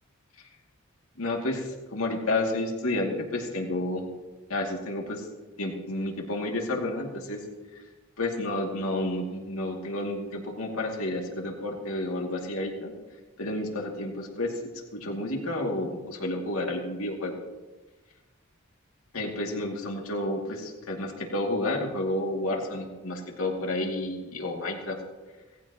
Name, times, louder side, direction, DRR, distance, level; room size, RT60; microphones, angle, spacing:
voice 1, 1.2-4.1 4.5-5.2 5.6-7.4 8.2-12.9 13.4-14.5 15.0-17.3 19.1-25.0, left 1 dB, 80° left, 0 dB, 2.5 m, -30 dB
18.5 x 15.0 x 3.0 m, 1.2 s
head